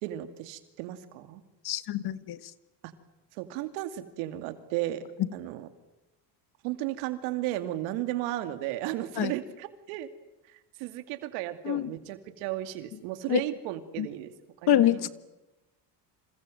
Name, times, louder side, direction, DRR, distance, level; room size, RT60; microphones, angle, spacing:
voice 1, 0.0-1.4 3.3-5.0 5.3-5.7 6.6-10.1 10.5-14.3 14.6-15.1, right 14 dB, 80° right, 9 dB, 2.5 m, -34 dB
voice 2, 1.6-2.4 9.2-9.3 11.6-11.9 13.3-13.4 14.0-14.1 14.7-15.1, left 11 dB, 55° left, 14 dB, 1.6 m, -25 dB
28.0 x 27.0 x 7.8 m, 1.0 s
supercardioid pair, 85°, 47 cm